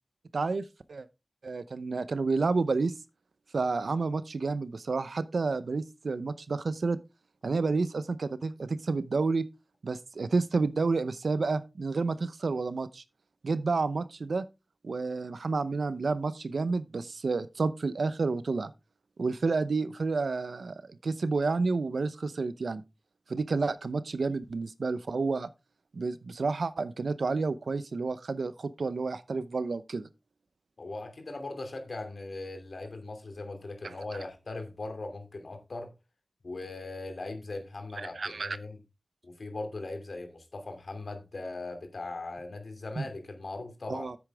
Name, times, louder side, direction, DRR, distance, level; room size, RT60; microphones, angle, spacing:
voice 1, 0.3-1.1 1.4-2.9 3.5-7.0 7.4-9.4 9.8-13.0 13.4-14.4 14.8-18.7 19.2-22.8 23.3-25.5 25.9-30.1 33.8-33.9 38.0-38.6 43.0-43.1 43.9-44.2, right 4 dB, 85° right, 0.7 m, -30 dB
voice 2, 30.8-35.9 36.4-38.8 39.2-44.1, left 2 dB, 75° left, 2.6 m, -39 dB
9.5 x 8.3 x 3.5 m
cardioid pair, 45°, 0 cm